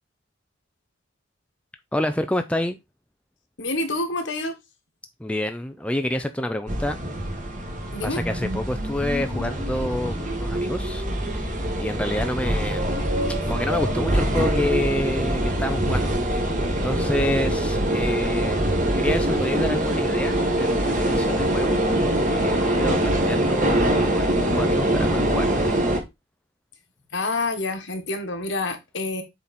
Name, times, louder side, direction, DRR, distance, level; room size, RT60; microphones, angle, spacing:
voice 1, 1.9-2.8 5.2-7.0 8.0-12.9 13.5-16.2 16.8-25.8, left 1 dB, 5° left, 0.5 m, -28 dB
voice 2, 3.6-4.6 7.9-8.2 27.1-29.2, left 2 dB, 70° left, 1.5 m, -27 dB
sound 1, 6.7-26.0, right 1 dB, 40° right, 1.7 m, -23 dB
7.2 x 4.0 x 4.2 m
head